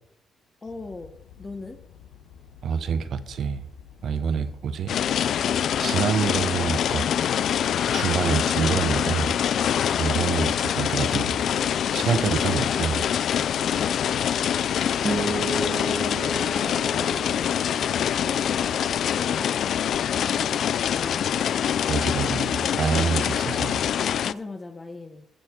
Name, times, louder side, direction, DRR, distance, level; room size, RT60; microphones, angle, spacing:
voice 1, 0.6-1.1 1.4-1.8 13.5-14.1 15.2-19.6 20.1-21.6 23.3-23.6 24.2-25.3, left 3 dB, 30° left, 1.2 m, -41 dB
sound 1, 0.7-20.2, left 7 dB, 90° left, 1.1 m, -49 dB
voice 2, 2.6-3.7 4.0-4.9 5.8-7.1 7.9-9.3 10.0-11.5 11.9-13.0 21.9-23.8, right 6 dB, 65° right, 1.1 m, -26 dB
sound 2, 4.9-24.3, left 9 dB, 70° left, 0.4 m, -25 dB
sound 3, 15.0-19.5, right 3 dB, 30° right, 1.8 m, -34 dB
15.0 x 7.0 x 4.5 m
cardioid pair, 75°, 0 cm